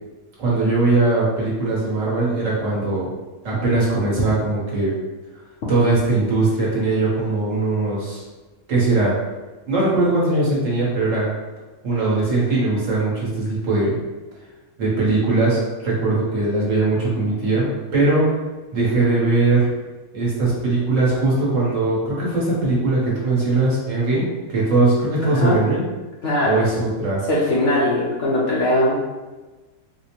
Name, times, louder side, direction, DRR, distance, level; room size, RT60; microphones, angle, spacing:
voice 1, 0.4-3.1 3.4-4.9 5.7-8.2 8.7-9.2 9.7-11.3 11.8-14.0 14.8-18.3 18.7-19.7 20.1-25.8 26.4-27.2, right 2 dB, 55° right, -6 dB, 1.3 m, -20 dB
voice 2, 26.2-26.6 27.3-29.0, left 1 dB, 60° left, -6 dB, 0.9 m, -20 dB
4.2 x 2.1 x 2.9 m, 1.2 s
omnidirectional pair, 1.7 m